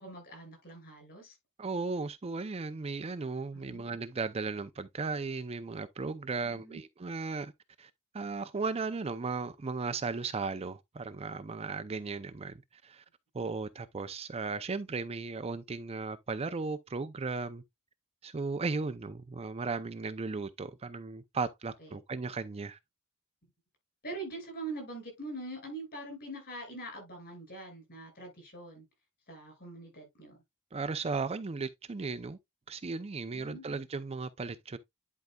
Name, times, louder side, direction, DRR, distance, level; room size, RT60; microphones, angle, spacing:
voice 1, 0.0-1.4 3.5-3.8 6.4-6.8 21.8-22.0 24.0-28.9 29.3-30.4 33.3-33.6, right 2 dB, 45° left, 5.4 m, -43 dB
voice 2, 1.6-7.5 7.8-12.5 12.8-13.0 13.3-17.6 18.2-22.8 30.7-32.4 32.7-34.8, right 4 dB, 25° right, 0.5 m, -36 dB
10.5 x 4.7 x 2.3 m
head